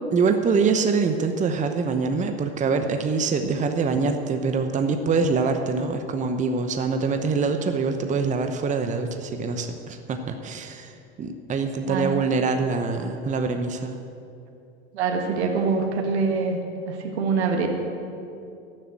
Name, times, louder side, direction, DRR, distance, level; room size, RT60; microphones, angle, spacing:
voice 1, 0.1-14.0, right 4 dB, 25° right, 6 dB, 0.9 m, -24 dB
voice 2, 14.9-16.6 16.9-17.7, right 5 dB, 80° right, 3 dB, 1.6 m, -24 dB
12.0 x 7.7 x 8.6 m, 2.6 s
hypercardioid pair, 95°, 33 cm